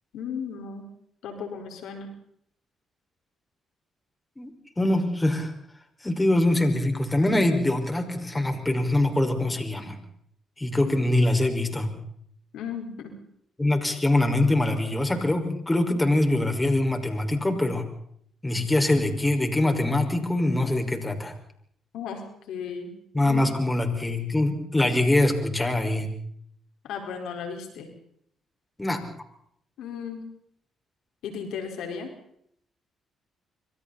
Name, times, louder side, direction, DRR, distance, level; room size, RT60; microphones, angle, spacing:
voice 1, 0.1-0.9 1.2-2.1 10.9-11.0 12.5-13.1 21.9-22.9 23.2-23.5 26.8-27.9 29.8-30.2 31.2-32.1, left 6 dB, 80° left, 3 dB, 4.8 m, -35 dB
voice 2, 4.8-5.5 6.0-10.0 10.6-11.9 13.6-17.8 18.4-21.3 23.1-26.1 28.8-29.0, left 1 dB, 15° left, 5 dB, 5.5 m, -23 dB
26.0 x 26.0 x 4.3 m, 0.68 s
supercardioid pair, 65°, 0 cm